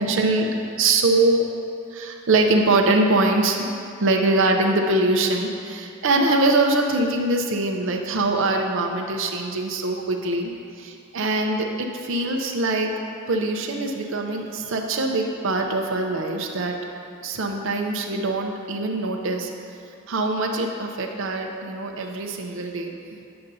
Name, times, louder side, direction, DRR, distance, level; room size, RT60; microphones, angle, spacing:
voice 1, 0.0-1.5 1.9-3.7 4.0-12.9 13.3-16.7 17.2-19.5 20.1-23.3, right 2 dB, 65° right, 2 dB, 0.6 m, -23 dB
8.6 x 7.0 x 2.6 m, 2.5 s
head